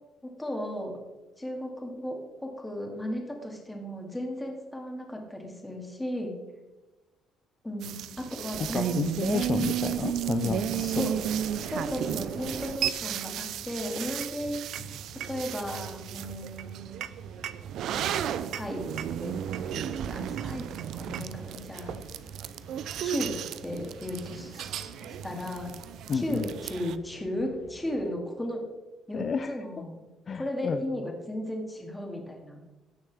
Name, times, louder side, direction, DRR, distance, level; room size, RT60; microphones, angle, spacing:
voice 1, 0.4-1.0 1.4-6.3 7.6-9.0 10.8-11.1 11.7-15.0 15.3-16.9 17.9-18.1 18.5-18.8 19.2-19.4 19.6-21.9 23.0-23.3 23.6-24.9 25.2-25.7 26.1-28.6 29.1-30.0 30.3-32.6, left 1 dB, 10° left, 1 dB, 2.4 m, -35 dB
sound 1, 7.8-27.0, right 10 dB, 70° right, 0.5 m, -34 dB
voice 2, 8.7-11.1 26.1-26.5 29.1-29.6 30.3-30.8, left 6 dB, 40° left, 10 dB, 0.4 m, -30 dB
sound 2, 9.3-28.1, left 4 dB, 85° left, 1.6 m, -54 dB
16.5 x 6.5 x 3.5 m, 1.2 s
cardioid pair, 120°, 0 cm